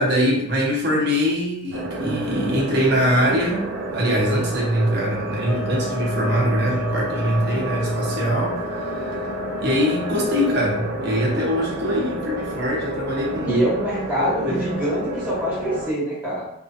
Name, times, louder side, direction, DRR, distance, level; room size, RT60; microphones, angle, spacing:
voice 1, 0.0-3.7 3.9-9.2 9.6-13.6 14.2-14.7, equal, 55° right, -3 dB, 0.9 m, -23 dB
sound 1, 1.7-15.9, right 1 dB, 90° right, 0.5 m, -30 dB
sound 2, 5.4-10.9, left 7 dB, 45° left, 0.8 m, -34 dB
voice 2, 13.5-16.5, right 1 dB, 10° right, -9 dB, 1.2 m, -24 dB
2.8 x 2.7 x 2.5 m, 0.76 s
head